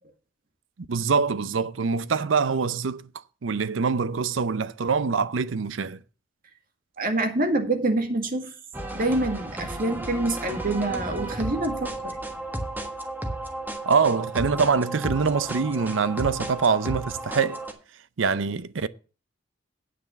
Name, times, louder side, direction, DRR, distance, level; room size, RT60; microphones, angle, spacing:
voice 1, 0.9-3.0 3.4-6.0 13.9-17.6 18.2-18.9, right 5 dB, 90° right, 0.6 m, -24 dB
voice 2, 7.0-8.5 8.9-12.2, right 2 dB, 50° right, 2.0 m, -26 dB
sound 1, 8.7-17.7, right 1 dB, 10° right, 1.4 m, -33 dB
9.4 x 6.1 x 6.9 m
head